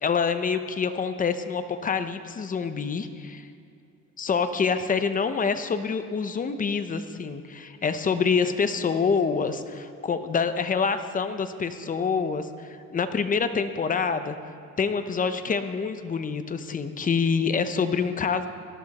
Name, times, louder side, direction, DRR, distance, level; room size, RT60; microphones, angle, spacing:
voice 1, 0.0-3.5 4.2-14.3 14.8-18.5, left 5 dB, 25° left, 9 dB, 0.8 m, -26 dB
18.5 x 12.5 x 4.2 m, 2.5 s
cardioid pair, 130°, 30 cm